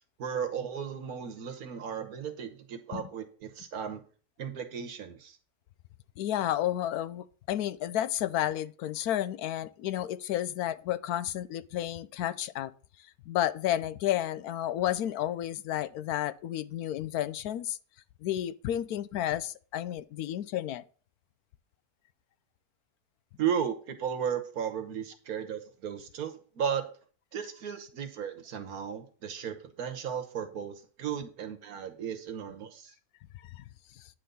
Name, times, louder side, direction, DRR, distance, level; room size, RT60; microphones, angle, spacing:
voice 1, 0.2-4.0 4.4-5.4 23.4-26.9 27.3-32.9, right 8 dB, 70° right, 1.5 m, -35 dB
voice 2, 6.2-12.7 13.3-17.8 18.2-20.8 33.5-33.6, left 12 dB, 80° left, 1.1 m, -31 dB
9.5 x 3.9 x 6.8 m
omnidirectional pair, 1.6 m